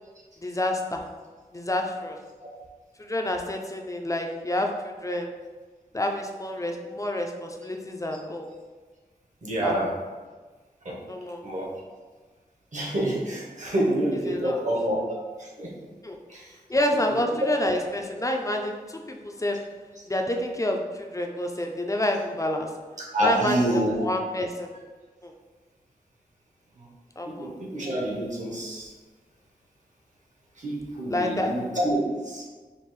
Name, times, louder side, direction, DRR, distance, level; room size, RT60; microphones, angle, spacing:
voice 1, 0.4-1.1 1.5-2.2 3.0-5.4 5.9-8.5 9.6-9.8 11.1-11.4 14.1-14.6 16.0-16.2 16.7-19.7 20.1-22.9 23.2-24.7 25.2-25.3 27.2-27.5 31.1-31.7, left 1 dB, 20° left, 3 dB, 0.5 m, -28 dB
voice 2, 9.4-9.9 10.8-10.9 11.4-11.7 12.7-15.8 16.3-16.4 23.0-24.0 27.2-28.9 30.6-32.4, right 1 dB, 50° right, -3 dB, 1.2 m, -27 dB
5.2 x 2.5 x 3.2 m, 1.4 s
wide cardioid pair, 70°, 16 cm